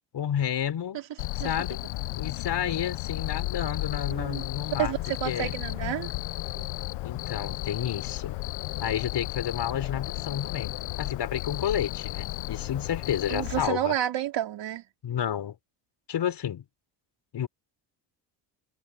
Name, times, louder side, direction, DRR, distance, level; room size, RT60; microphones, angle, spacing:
voice 1, 0.1-1.0 1.3-1.9 2.2-4.9 5.2-5.5 7.0-8.4 8.8-13.9 15.0-15.6 16.1-16.6 17.3-17.5, left 9 dB, 55° left, 4.1 m, -31 dB
Cricket, 1.2-13.7, left 19 dB, 75° left, 1.0 m, -34 dB
voice 2, 4.1-4.5 4.8-6.1 6.6-6.7 13.3-14.8, right 12 dB, 60° right, 3.8 m, -30 dB
supercardioid pair, 85°, 48 cm